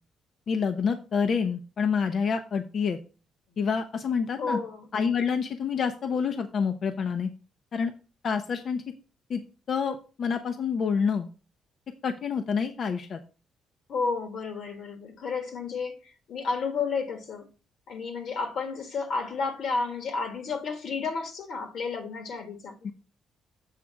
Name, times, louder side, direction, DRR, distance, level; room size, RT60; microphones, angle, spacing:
voice 1, 0.5-3.0 3.6-4.6 4.9-7.3 7.7-7.9 8.2-8.8 9.3-9.4 9.7-11.3 12.0-13.2 22.8-22.9, left 6 dB, 55° left, 0.7 m, -27 dB
voice 2, 4.4-4.9 13.9-17.4 17.9-22.7, left 4 dB, 70° left, 1.5 m, -31 dB
7.3 x 3.4 x 6.2 m
cardioid pair, 90°, 0 cm